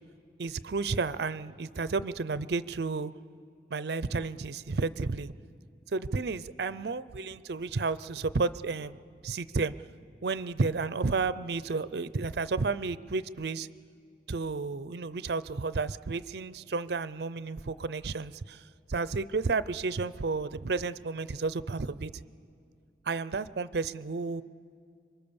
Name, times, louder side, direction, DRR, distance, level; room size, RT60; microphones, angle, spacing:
voice 1, 0.4-3.1 3.7-5.3 5.9-9.0 9.2-9.7 10.2-13.7 14.3-18.6 18.9-22.2 23.1-24.4, right 4 dB, 65° right, 16 dB, 0.5 m, -32 dB
26.0 x 23.5 x 7.0 m, 2.3 s
head